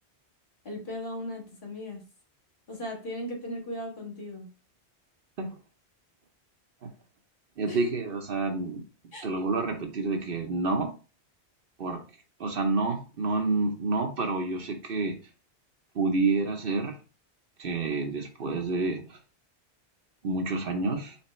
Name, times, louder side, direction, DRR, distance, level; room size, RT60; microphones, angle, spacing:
voice 1, 0.6-2.0 2.7-4.5 7.6-8.0 9.1-9.3, left 1 dB, 50° left, 1.8 m, -37 dB
voice 2, 7.6-8.8 9.2-10.9 11.8-12.0 12.4-15.2 15.9-17.0 17.6-19.2 20.2-21.2, right 3 dB, 60° right, 0.9 m, -29 dB
4.4 x 3.5 x 3.1 m
omnidirectional pair, 1.1 m